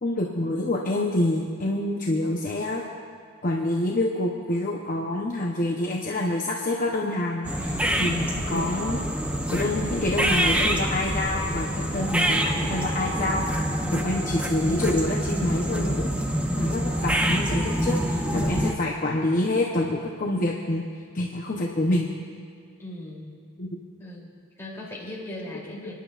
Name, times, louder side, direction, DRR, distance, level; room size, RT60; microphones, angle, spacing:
voice 1, 0.0-2.8 3.4-9.0 9.5-13.6 13.9-20.8 21.1-22.1 23.6-23.7, left 1 dB, 40° left, -2 dB, 0.8 m, -27 dB
sound 1, 7.4-18.7, right 1 dB, 5° right, 0.6 m, -26 dB
voice 2, 7.7-8.1 13.8-14.2 22.8-23.3 24.0-25.9, left 1 dB, 10° left, -5 dB, 2.9 m, -40 dB
29.5 x 10.5 x 2.4 m, 2.3 s
head